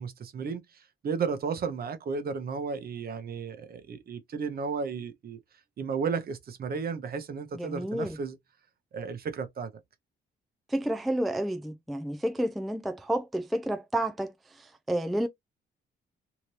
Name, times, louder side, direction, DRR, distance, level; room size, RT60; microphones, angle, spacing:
voice 1, 0.0-5.4 5.8-8.4 8.9-9.7, right 5 dB, 50° right, 0.8 m, -33 dB
voice 2, 7.5-8.2 10.7-14.3 14.6-15.3, right 1 dB, ahead, 0.3 m, -30 dB
2.8 x 2.6 x 3.1 m
cardioid pair, 90°, 20 cm